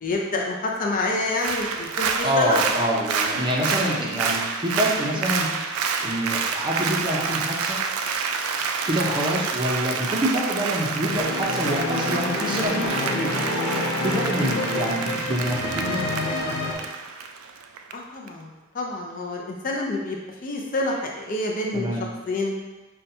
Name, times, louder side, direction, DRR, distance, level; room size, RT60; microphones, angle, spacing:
voice 1, 0.0-2.6 5.1-5.2 17.9-21.9 22.3-22.5, left 2 dB, 40° left, 0 dB, 0.4 m, -27 dB
Applause, 1.3-17.9 18.3-18.4, right 5 dB, 85° right, 0.3 m, -28 dB
voice 2, 2.2-7.8 8.4-13.3 13.7-16.0 21.7-22.0, equal, 20° right, -3 dB, 0.6 m, -26 dB
sound 1, 10.9-16.7, left 2 dB, 80° left, 0.7 m, -28 dB
5.4 x 2.2 x 2.7 m, 1.1 s
head